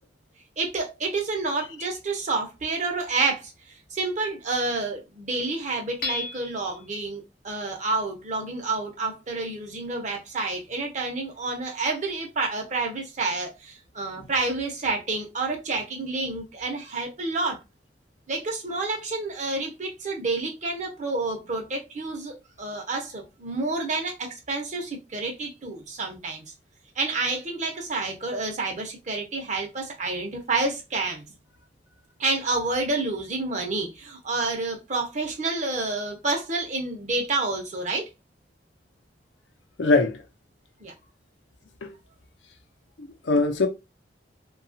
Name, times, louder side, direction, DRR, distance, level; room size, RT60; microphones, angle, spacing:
voice 1, 0.6-17.6 18.3-26.4 27.0-31.2 32.2-38.1 40.8-40.9, right 3 dB, 40° right, 0.7 m, -29 dB
Hammer / Chink clink, 6.0-6.8, left 3 dB, 50° left, 0.7 m, -33 dB
voice 2, 39.8-40.2 41.8-41.9 43.0-43.7, left 3 dB, 85° left, 0.6 m, -22 dB
2.8 x 2.3 x 2.6 m
head